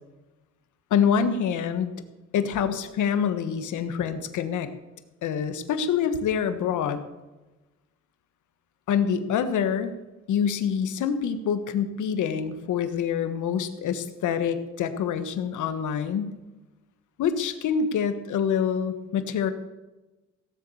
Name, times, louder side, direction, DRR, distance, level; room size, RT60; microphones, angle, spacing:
voice 1, 0.9-1.9 2.3-4.7 5.2-7.0 8.9-9.9 10.3-16.4 17.2-19.5, left 7 dB, 80° left, 10 dB, 1.5 m, -26 dB
17.0 x 8.2 x 7.1 m, 1.1 s
cardioid pair, 90°, 30 cm